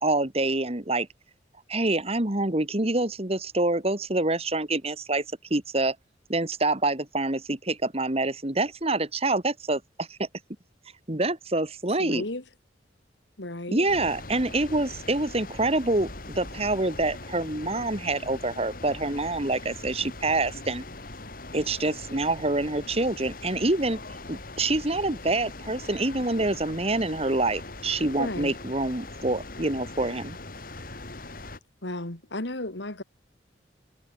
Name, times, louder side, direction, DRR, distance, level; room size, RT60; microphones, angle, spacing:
voice 1, 0.0-1.1 1.7-5.2 5.5-6.0 6.3-10.3 11.1-12.2 13.7-16.1 16.3-20.8 21.5-24.0 24.3-30.4, right 2 dB, 35° right, 2.2 m, -26 dB
voice 2, 12.0-12.4 13.4-13.9 28.2-28.5 31.8-33.0, left 1 dB, 85° left, 3.1 m, -33 dB
sound 1, 13.9-31.6, left 2 dB, 50° left, 3.2 m, -41 dB
head